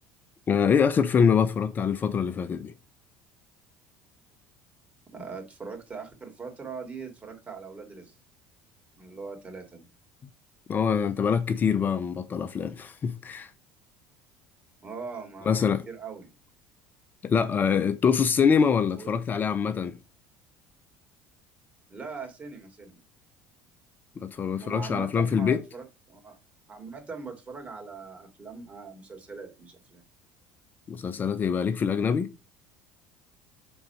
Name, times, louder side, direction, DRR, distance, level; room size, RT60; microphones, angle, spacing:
voice 1, 0.5-2.7 10.7-13.5 15.5-15.9 17.2-20.0 24.2-25.6 30.9-32.3, left 6 dB, 35° left, 0.5 m, -24 dB
voice 2, 5.1-8.1 9.0-9.9 14.8-16.3 19.0-19.1 21.9-23.0 24.4-26.3 26.7-30.0, right 5 dB, 25° right, 2.4 m, -41 dB
4.4 x 3.9 x 5.5 m
hypercardioid pair, 80°, 5 cm